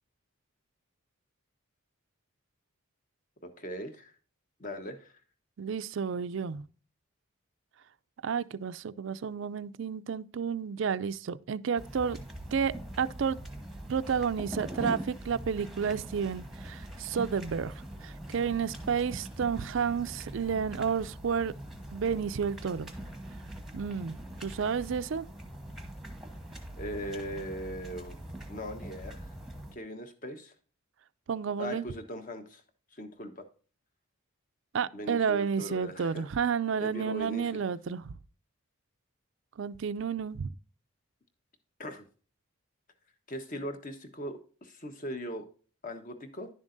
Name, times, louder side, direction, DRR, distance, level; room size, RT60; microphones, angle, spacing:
voice 1, 3.4-4.1 4.6-5.1 26.8-28.2 28.5-29.3 29.7-30.5 31.6-32.6 32.9-33.5 34.9-36.2 36.8-37.6 41.8-42.0 43.3-45.5 45.8-46.5, equal, 40° left, 1.1 m, -39 dB
voice 2, 5.6-6.6 8.2-12.2 12.5-13.4 13.9-17.7 18.0-21.5 21.9-22.9 23.7-25.3 31.3-31.8 34.7-38.1 39.6-40.5, right 6 dB, 60° right, 0.4 m, -31 dB
sound 1, 11.8-29.7, right 1 dB, ahead, 1.1 m, -43 dB
10.5 x 7.2 x 2.6 m
head